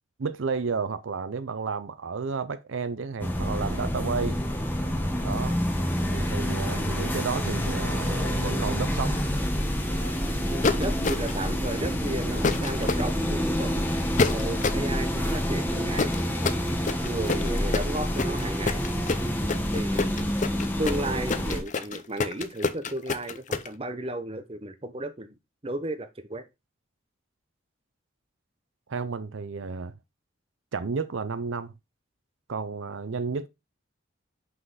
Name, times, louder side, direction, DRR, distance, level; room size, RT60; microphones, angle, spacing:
voice 1, 0.2-4.4 5.2-5.6 6.1-9.2 28.9-30.0 30.7-31.7 32.5-33.5, right 5 dB, 70° right, 0.5 m, -32 dB
sound 1, 3.2-21.6, equal, 10° left, 1.1 m, -28 dB
voice 2, 10.5-13.9 14.3-16.1 17.0-18.8 19.7-25.3 25.6-26.4, right 1 dB, 30° right, 0.8 m, -34 dB
sound 2, 10.6-11.4 12.4-13.0 14.2-14.9 16.0-23.7, left 4 dB, 35° left, 0.5 m, -27 dB
5.6 x 5.5 x 4.0 m
head